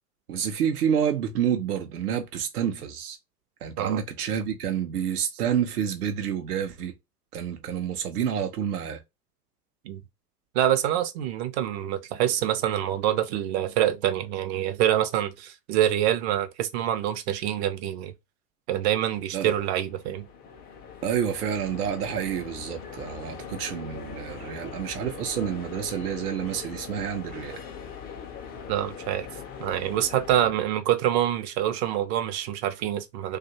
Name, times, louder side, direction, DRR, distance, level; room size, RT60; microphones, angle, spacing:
voice 1, 0.3-3.2 3.6-6.9 7.3-9.0 19.3-19.5 21.0-27.6, right 8 dB, 75° right, 0.7 m, -28 dB
voice 2, 10.5-18.1 18.7-20.2 28.7-29.3 29.6-33.4, right 11 dB, 45° right, 0.6 m, -26 dB
sound 1, 19.6-30.4, left 6 dB, 20° left, 0.4 m, -41 dB
2.5 x 2.4 x 2.7 m
hypercardioid pair, 95°, 47 cm